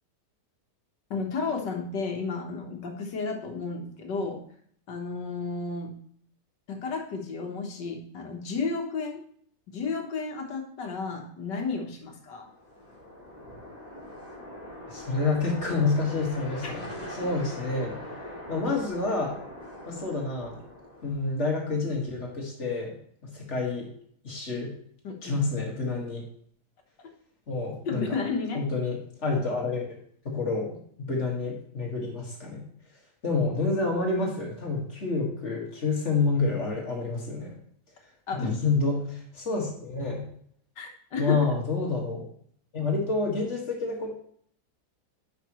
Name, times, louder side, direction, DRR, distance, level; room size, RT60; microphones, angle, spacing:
voice 1, 1.1-4.4 4.9-5.9 6.7-9.2 9.7-12.5 16.6-16.7 25.0-25.4 27.9-28.6 38.3-38.6 40.8-41.5, left 4 dB, 85° left, 3 dB, 1.9 m, -32 dB
sound 1, 12.4-21.5, left 1 dB, 25° left, 2.2 m, -42 dB
voice 2, 14.9-16.9 17.1-18.0 18.5-19.4 19.9-20.6 21.0-22.9 23.2-23.9 24.2-24.7 25.2-26.2 27.5-28.0 28.5-30.0 30.3-30.8 31.1-32.6 33.2-37.5 38.4-40.2 41.2-42.2 42.7-44.2, left 3 dB, 40° left, -1 dB, 2.1 m, -28 dB
10.5 x 5.8 x 3.1 m, 0.62 s
omnidirectional pair, 1.8 m